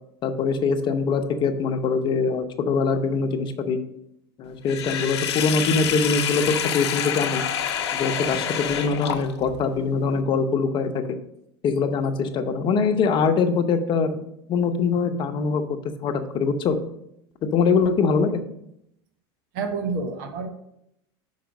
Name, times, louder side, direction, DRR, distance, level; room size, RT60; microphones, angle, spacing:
voice 1, 0.2-3.8 4.4-7.4 7.9-11.2 11.6-15.6 16.0-16.8 17.5-18.4, left 5 dB, 35° left, 7 dB, 0.8 m, -23 dB
Sink (filling or washing), 4.7-9.6, left 9 dB, 90° left, 0.8 m, -27 dB
voice 2, 19.5-20.5, right 4 dB, 60° right, 7 dB, 1.2 m, -28 dB
5.8 x 4.8 x 5.3 m, 0.77 s
supercardioid pair, 120°, 14 cm